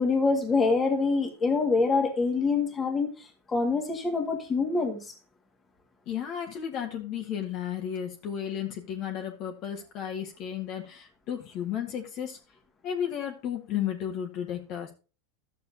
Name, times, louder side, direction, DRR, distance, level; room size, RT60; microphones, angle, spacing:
voice 1, 0.0-3.1 3.5-5.1, left 4 dB, 20° left, 5 dB, 1.9 m, -25 dB
voice 2, 6.1-12.4 12.8-14.9, left 9 dB, 45° left, 2 dB, 1.6 m, -33 dB
12.0 x 6.7 x 2.8 m, 0.32 s
supercardioid pair, 130°, 0 cm